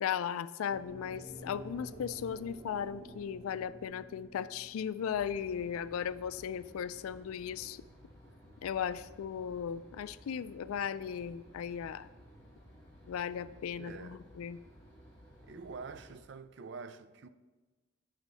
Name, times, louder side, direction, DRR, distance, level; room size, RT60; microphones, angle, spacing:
voice 1, 0.0-7.8 8.6-12.1 13.1-14.6, left 8 dB, 85° left, 0.3 m, -37 dB
sound 1, 0.7-8.9, equal, 30° right, 2.2 m, -51 dB
sound 2, 5.1-16.2, equal, 20° left, 2.5 m, -56 dB
voice 2, 13.8-14.2 15.4-17.3, right 4 dB, 55° right, 0.4 m, -46 dB
8.0 x 6.3 x 4.0 m
head